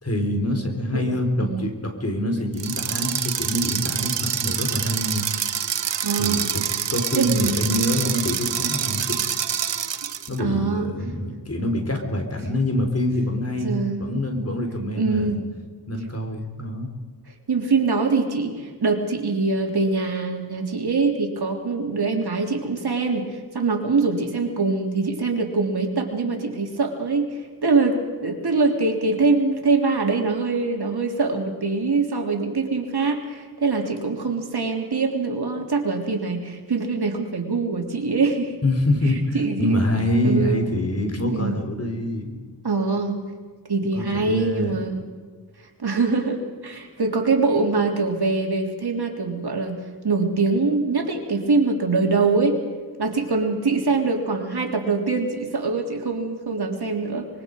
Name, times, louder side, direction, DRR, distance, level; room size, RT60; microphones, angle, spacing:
voice 1, 0.0-5.2 6.2-6.6 6.9-9.2 10.3-15.4 15.9-16.9 38.6-42.3 43.9-44.8, left 1 dB, 35° left, 4 dB, 4.0 m, -25 dB
voice 2, 0.9-1.7 6.0-6.5 7.1-7.7 10.4-10.9 13.6-14.0 15.0-15.4 17.5-38.5 39.3-39.8 40.2-40.7 41.3-41.6 42.6-43.2 43.7-45.0 45.8-49.8 50.0-52.6 53.0-57.3, right 4 dB, 65° right, 2 dB, 3.4 m, -23 dB
sound 1, 2.5-10.4, right 8 dB, 80° right, 1.0 m, -26 dB
24.5 x 22.5 x 5.3 m, 1.5 s
wide cardioid pair, 65°, 42 cm